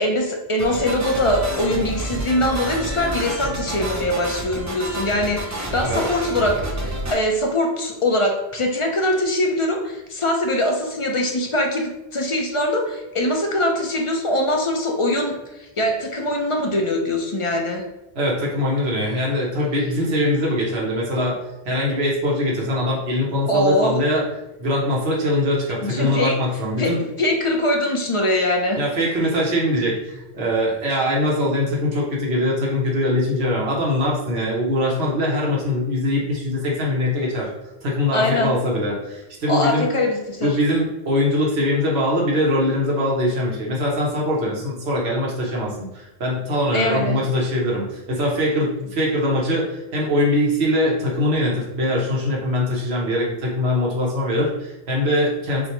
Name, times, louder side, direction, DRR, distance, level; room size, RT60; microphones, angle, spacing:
voice 1, 0.0-17.8 23.5-24.0 25.8-26.4 26.8-26.9 27.2-28.8 38.1-38.5 39.5-40.6 46.7-47.2, left 1 dB, 35° left, 1 dB, 0.6 m, -22 dB
sound 1, 0.6-7.1, right 1 dB, 25° right, 0.5 m, -29 dB
voice 2, 18.1-21.4 21.6-24.2 24.6-27.0 28.8-37.5 37.8-39.9 40.4-55.7, left 1 dB, 90° right, -3 dB, 1.3 m, -22 dB
6.1 x 2.2 x 3.0 m, 0.97 s
omnidirectional pair, 1.0 m